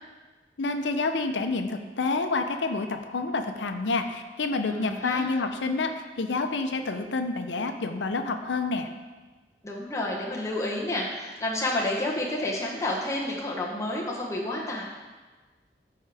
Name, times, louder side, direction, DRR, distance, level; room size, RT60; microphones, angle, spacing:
voice 1, 0.6-8.9, left 3 dB, 85° left, 6 dB, 0.7 m, -28 dB
voice 2, 4.7-5.3 9.6-14.8, left 1 dB, 20° left, -3 dB, 0.9 m, -30 dB
12.5 x 4.7 x 3.4 m, 1.3 s
head